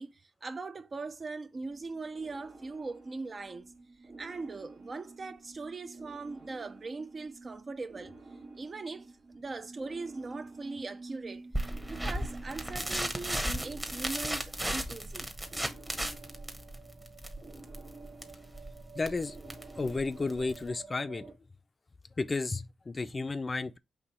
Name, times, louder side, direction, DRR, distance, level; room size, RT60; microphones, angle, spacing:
voice 1, 0.0-3.7 4.2-8.2 8.5-9.1 9.3-15.3, right 3 dB, 45° right, 0.5 m, -40 dB
sound 1, 1.6-21.3, right 3 dB, 70° right, 1.5 m, -50 dB
sound 2, 11.5-20.7, right 1 dB, 15° right, 1.0 m, -36 dB
voice 2, 18.9-19.4 19.8-21.3 22.2-23.8, left 3 dB, 35° left, 0.4 m, -32 dB
4.1 x 2.9 x 4.2 m
supercardioid pair, 45°, 0 cm